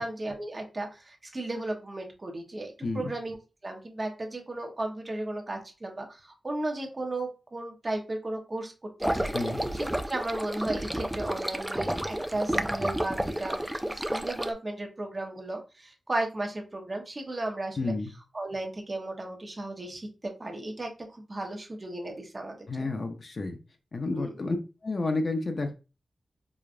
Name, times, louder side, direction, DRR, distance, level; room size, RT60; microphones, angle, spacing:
voice 1, 0.0-3.4 3.6-8.7 9.0-9.3 9.7-17.9 18.3-22.9 24.1-24.4, right 2 dB, 25° right, 2 dB, 0.8 m, -35 dB
sound 1, 9.0-14.5, right 1 dB, 5° right, 0.3 m, -31 dB
voice 2, 17.8-18.1 22.7-23.6 23.9-24.6 24.8-25.7, left 3 dB, 40° left, 5 dB, 0.6 m, -30 dB
4.9 x 2.4 x 2.4 m, 0.30 s
wide cardioid pair, 160°, 0 cm